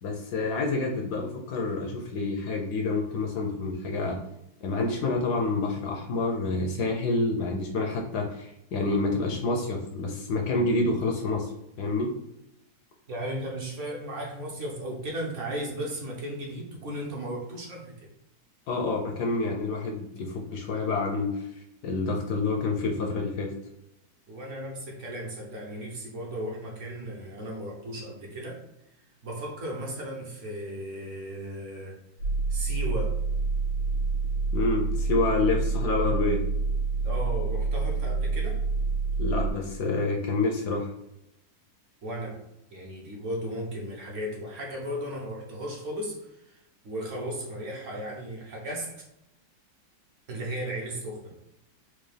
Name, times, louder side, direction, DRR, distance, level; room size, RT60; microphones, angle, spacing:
voice 1, 0.0-4.2 4.6-11.5 11.8-12.1 18.7-21.5 21.8-23.5 34.5-36.4 39.2-40.9, left 3 dB, 75° left, 2 dB, 1.0 m, -28 dB
voice 2, 13.1-18.1 24.3-28.6 29.2-32.0 32.5-33.2 37.0-38.6 42.0-42.4 42.7-49.0 50.3-51.4, right 1 dB, 60° right, -2 dB, 0.8 m, -35 dB
sound 1, 32.2-39.5, right 4 dB, 80° right, 1.6 m, -27 dB
4.6 x 2.3 x 3.2 m, 0.82 s
omnidirectional pair, 2.1 m